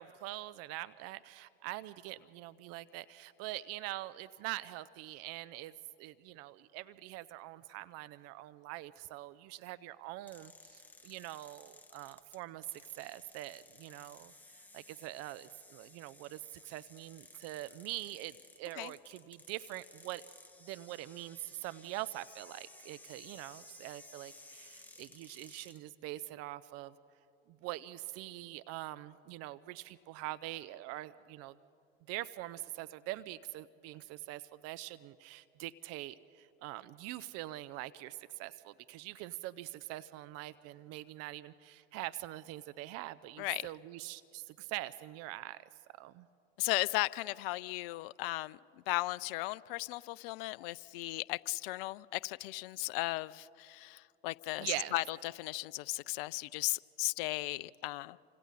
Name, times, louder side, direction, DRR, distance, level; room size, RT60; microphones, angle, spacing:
voice 1, 0.0-5.7 6.0-12.6 13.0-14.3 14.7-20.2 20.6-26.9 27.6-31.5 32.1-45.6 46.0-46.3 54.6-54.9, right 16 dB, 50° right, 0.7 m, -44 dB
sound 1, 10.3-25.8, left 2 dB, 5° left, 1.6 m, -57 dB
voice 2, 43.4-43.7 46.6-48.6 48.9-58.2, left 20 dB, 60° left, 0.5 m, -36 dB
28.5 x 25.5 x 4.1 m
hypercardioid pair, 85°, 31 cm